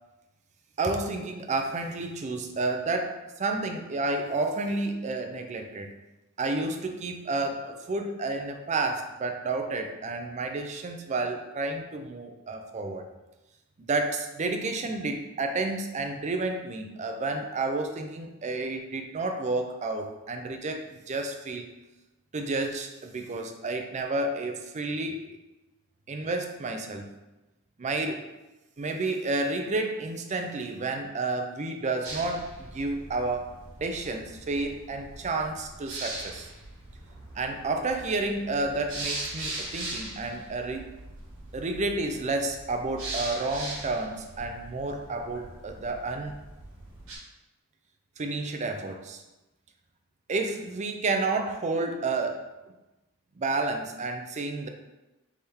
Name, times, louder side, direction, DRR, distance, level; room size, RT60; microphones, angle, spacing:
voice 1, 0.8-5.9 6.4-13.1 13.8-21.7 22.3-25.3 26.1-27.1 27.8-28.3 28.8-33.5 33.8-36.5 37.3-40.9 41.5-46.4 48.2-49.2 50.3-52.5 53.4-54.7, right 3 dB, 35° right, 5 dB, 0.4 m, -30 dB
sound 1, 32.0-47.2, right 2 dB, 65° right, 1.5 m, -40 dB
3.6 x 3.4 x 4.2 m, 1.0 s
head